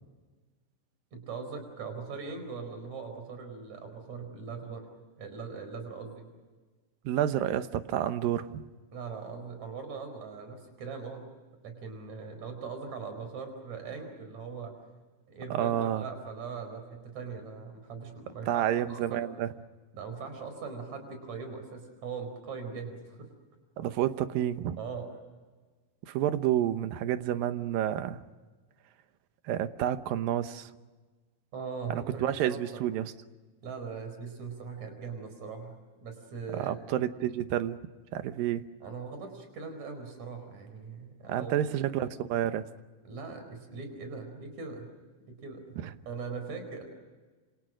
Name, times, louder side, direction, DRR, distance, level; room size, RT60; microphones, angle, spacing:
voice 1, 1.1-4.8 5.2-6.3 8.9-11.3 11.6-14.8 15.3-18.6 18.9-19.3 19.9-23.3 24.8-25.1 31.5-32.8 33.6-36.8 38.8-41.5 41.8-42.0 43.0-44.9 45.3-45.6 46.1-46.8, right 5 dB, 55° right, 6 dB, 5.8 m, -40 dB
voice 2, 7.1-8.6 15.5-16.0 18.5-19.5 23.8-24.8 26.1-28.2 29.5-30.7 31.9-33.1 36.5-37.8 38.1-38.6 41.3-42.6 45.8-45.9, right 11 dB, 80° right, 11 dB, 2.8 m, -29 dB
29.0 x 27.5 x 6.3 m, 1.3 s
omnidirectional pair, 4.0 m